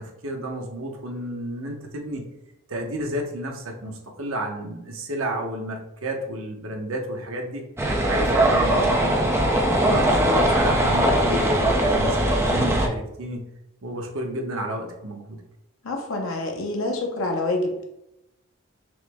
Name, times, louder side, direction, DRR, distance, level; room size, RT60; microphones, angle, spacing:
voice 1, 0.0-2.3 2.7-7.7 8.0-9.3 9.8-13.4 13.8-15.4, right 1 dB, 80° right, 2 dB, 0.8 m, -31 dB
sound 1, 7.8-12.9, right 1 dB, 10° right, 0.5 m, -20 dB
voice 2, 9.7-10.4 15.8-17.9, left 2 dB, 80° left, 2 dB, 0.7 m, -28 dB
6.1 x 2.0 x 3.4 m, 0.87 s
head